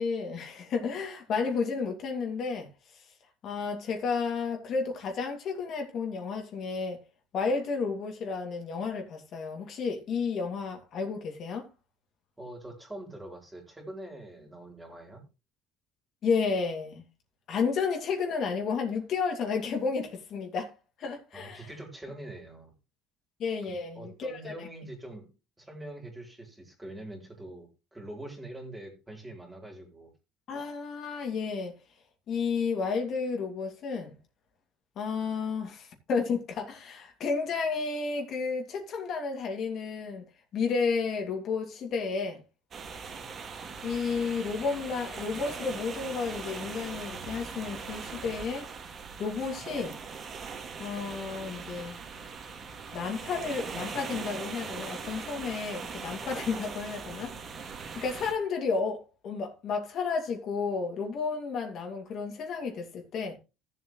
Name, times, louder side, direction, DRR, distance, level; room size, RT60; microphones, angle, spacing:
voice 1, 0.0-3.1 3.4-7.0 7.3-11.7 16.2-17.0 17.5-20.7 21.0-21.7 23.4-24.5 30.5-31.7 32.3-34.1 35.0-40.2 40.5-42.4 43.8-48.7 49.2-49.9 50.8-52.0 52.9-57.3 58.0-63.4, left 5 dB, 50° left, 2.5 m, -32 dB
voice 2, 12.4-15.2 21.3-22.7 23.6-25.3 25.6-30.1, right 1 dB, 10° right, 4.0 m, -44 dB
sound 1, 42.7-58.3, right 5 dB, 35° right, 2.1 m, -40 dB
15.5 x 7.5 x 3.2 m
cardioid pair, 125°, 0 cm